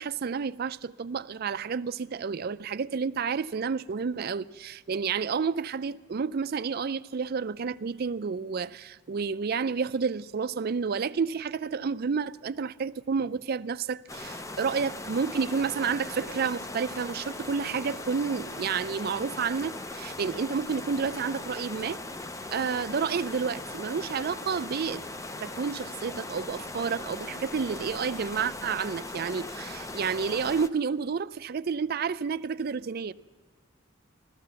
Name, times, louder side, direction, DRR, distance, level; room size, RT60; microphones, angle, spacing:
voice 1, 0.0-22.0 22.5-25.0 25.4-33.1, right 5 dB, 50° right, 0.4 m, -30 dB
sound 1, 14.1-30.7, left 2 dB, 15° left, 0.5 m, -39 dB
15.5 x 13.5 x 6.9 m
head